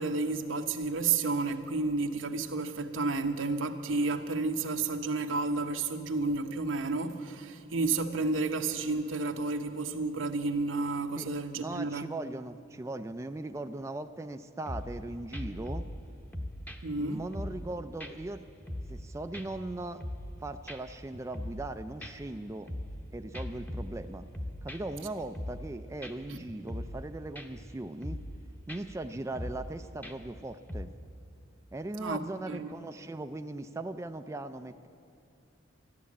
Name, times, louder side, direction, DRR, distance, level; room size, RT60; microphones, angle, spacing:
voice 1, 0.0-12.0 16.8-17.2 26.3-26.4 32.0-32.7, right 3 dB, 85° right, 1.0 m, -31 dB
voice 2, 11.2-15.8 17.0-18.4 18.9-20.0 20.4-22.7 23.1-24.3 24.6-28.2 28.7-30.9 31.7-34.9, right 2 dB, 15° right, 0.3 m, -39 dB
sound 1, 14.7-15.0 15.3-16.0 16.3-17.7 18.0-18.1 18.5-19.1 19.3-20.4 20.7-20.8 21.1-21.7 22.0-23.0 23.3-25.0 25.3-25.7 26.0-26.1 26.5-27.1 27.4-27.7 28.0-28.4 28.7-28.8 29.1-29.7 30.0-30.4 30.7-30.8, left 1 dB, 10° left, 0.8 m, -40 dB
13.5 x 11.5 x 8.5 m
head